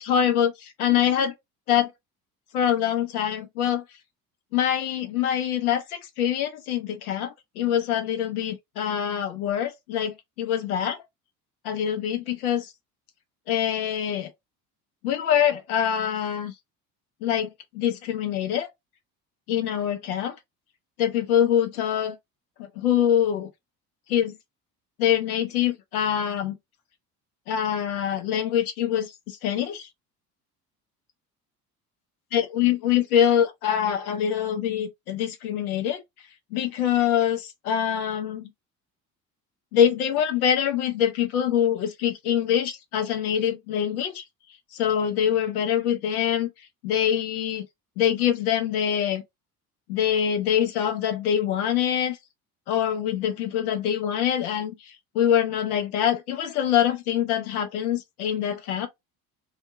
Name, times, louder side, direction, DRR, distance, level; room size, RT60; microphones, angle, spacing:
voice 1, 0.0-1.3 1.7-1.9 2.5-3.8 4.5-11.0 11.6-12.7 13.5-14.3 15.0-16.5 17.2-18.7 19.5-20.4 21.0-22.2 22.6-23.5 24.1-24.4 25.0-26.6 27.5-29.9 32.3-36.0 36.5-38.5 39.7-44.2 44.7-46.5 46.8-47.7 48.0-49.2 49.9-52.2 52.7-58.9, left 9 dB, 70° left, 0.8 m, -24 dB
2.7 x 2.4 x 3.1 m
figure-of-eight pair, 60°, 46 cm